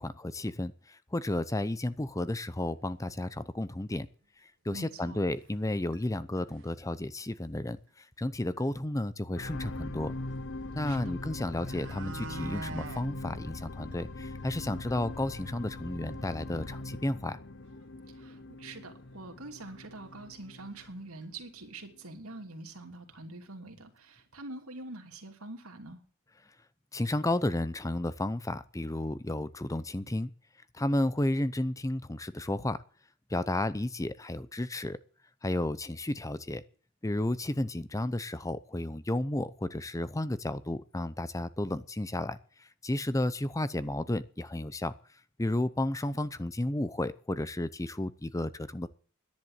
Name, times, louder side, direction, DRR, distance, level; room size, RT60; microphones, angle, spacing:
voice 1, 0.0-4.1 4.6-10.1 10.7-17.4 26.9-30.3 30.7-32.8 33.3-35.0 35.4-36.6 37.0-44.9 45.4-48.9, left 1 dB, 15° left, 15 dB, 0.6 m, -32 dB
sound 1, 2.6-2.7 3.2-3.3 3.6-3.7 4.7-4.8 5.4-5.7 5.9-6.0 6.4-6.8 8.2-8.3 8.6-8.7 11.0-11.1 11.4-13.1 13.5-13.6 13.9-14.0 14.4-14.5 14.8-14.9 17.7-17.8 18.2-18.3 19.1-19.2 19.6-19.8 20.1-20.9 21.2-21.3, right 3 dB, 60° right, 1.5 m, -43 dB
voice 2, 4.7-5.2 10.9-11.2 18.1-26.0, right 2 dB, 90° right, 4 dB, 2.8 m, -45 dB
sound 2, 9.4-21.7 22.3-22.4, left 2 dB, 60° left, 0.8 m, -41 dB
11.0 x 10.5 x 8.0 m, 0.44 s
head